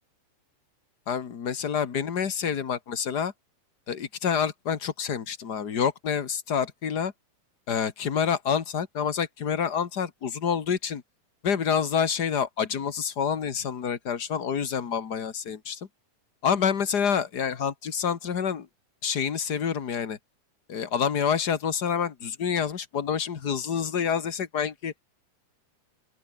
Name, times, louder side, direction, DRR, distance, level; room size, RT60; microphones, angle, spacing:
voice 1, 1.1-3.3 3.9-7.1 7.7-11.0 11.4-15.8 16.4-18.7 19.0-20.2 20.7-24.9, left 7 dB, 40° left, 1.6 m, -27 dB
open air
omnidirectional pair, 3.8 m